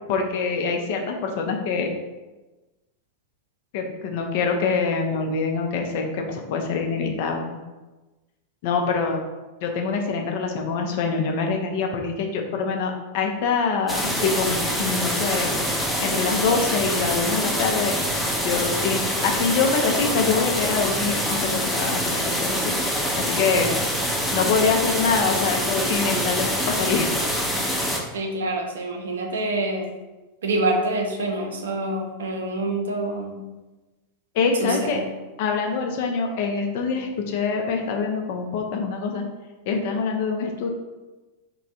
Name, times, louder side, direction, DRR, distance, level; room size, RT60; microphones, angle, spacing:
voice 1, 0.1-1.9 3.7-7.6 8.6-9.2 9.6-15.5 16.0-17.9 18.4-23.7 24.3-27.2 34.3-35.0 35.4-39.2 39.7-40.7, left 4 dB, 50° left, 3 dB, 0.5 m, -25 dB
sound 1, 13.9-28.0, equal, ahead, 0.6 m, -25 dB
voice 2, 28.1-29.9 30.4-33.4 34.6-35.0, right 2 dB, 65° right, 2 dB, 0.6 m, -26 dB
3.2 x 2.2 x 4.1 m, 1.1 s
figure-of-eight pair, 90°, 0 cm